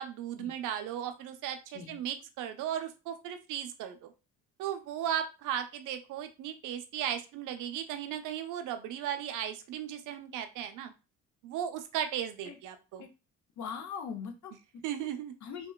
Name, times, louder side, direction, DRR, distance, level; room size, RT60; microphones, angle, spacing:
voice 1, 0.0-4.1 4.6-10.9 11.4-13.1 14.8-15.3, right 10 dB, 85° right, 7 dB, 0.5 m, -36 dB
voice 2, 13.6-14.8 15.4-15.7, left 6 dB, 65° left, 6 dB, 0.6 m, -41 dB
2.8 x 2.1 x 2.2 m, 0.29 s
cardioid pair, 90°, 30 cm